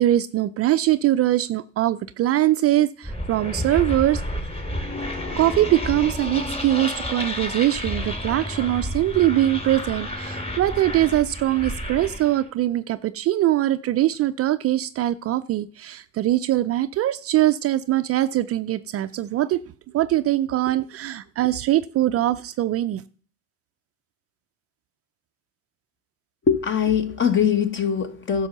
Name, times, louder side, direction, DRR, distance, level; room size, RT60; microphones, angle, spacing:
voice 1, 0.0-4.2 5.4-19.6 19.9-23.0, right 14 dB, 40° right, 0.4 m, -22 dB
sound 1, 3.0-12.4, left 1 dB, 15° left, 2.4 m, -30 dB
voice 2, 26.5-28.5, left 7 dB, 30° left, 1.2 m, -21 dB
11.0 x 6.2 x 6.7 m
supercardioid pair, 115°, 39 cm